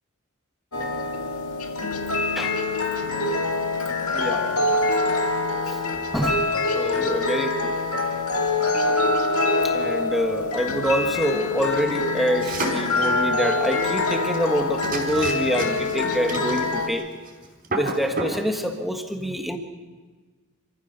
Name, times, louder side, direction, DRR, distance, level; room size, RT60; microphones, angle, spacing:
sound 1, 0.7-16.9, left 2 dB, 80° left, 2.1 m, -25 dB
voice 1, 4.1-4.6 5.7-5.8 6.1-7.7 9.6-17.1 17.7-19.6, equal, ahead, 4 dB, 1.6 m, -26 dB
sound 2, 12.4-12.9 14.3-14.5 14.8-16.0 16.3-17.0 17.3-17.4 17.6-18.4, right 2 dB, 40° right, 4.7 m, -29 dB
28.0 x 15.0 x 6.8 m, 1.4 s
head